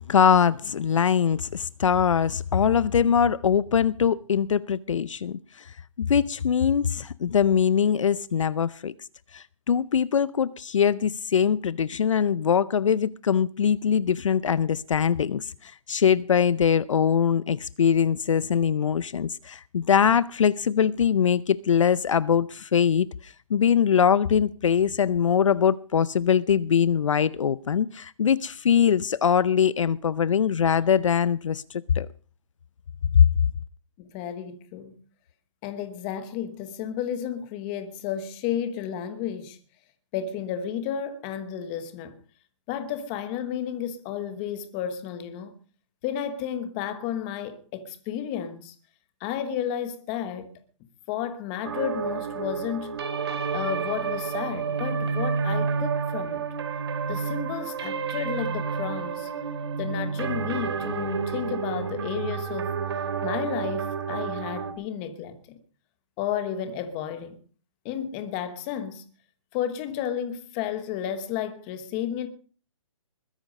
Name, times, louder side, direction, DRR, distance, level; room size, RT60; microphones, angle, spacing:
voice 1, 0.0-8.9 9.3-32.1 33.1-33.3, left 7 dB, 65° left, 0.6 m, -22 dB
voice 2, 34.0-34.9 35.6-39.6 40.1-42.1 42.7-45.6 46.0-48.7 49.2-50.5 51.1-53.0 53.5-56.5 57.1-59.3 59.8-62.7 63.2-65.4 66.2-67.4 67.8-69.0 69.5-72.3, left 9 dB, 15° left, 1.2 m, -32 dB
sound 1, 51.6-64.7, right 6 dB, 50° right, 2.7 m, -30 dB
21.0 x 10.0 x 5.3 m
hypercardioid pair, 170°, 17 cm